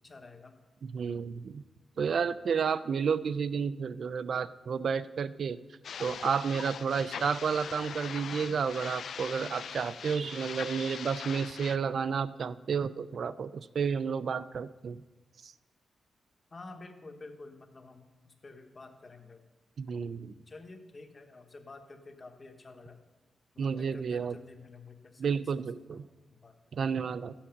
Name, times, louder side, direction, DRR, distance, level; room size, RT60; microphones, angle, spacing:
voice 1, 0.0-0.6 16.5-19.4 19.9-20.0 20.5-23.0 23.5-25.3 25.9-26.0 26.3-26.5, left 3 dB, 30° left, 6 dB, 1.1 m, -50 dB
voice 2, 0.9-1.6 2.0-5.6 6.0-15.0 15.4-15.5 19.8-20.3 23.6-24.4 25.2-26.0 26.7-27.3, right 6 dB, 55° right, 14 dB, 0.3 m, -31 dB
sound 1, 5.8-11.8, left 7 dB, 65° left, 0.3 m, -41 dB
12.5 x 7.2 x 5.8 m, 1.2 s
wide cardioid pair, 135°, 0 cm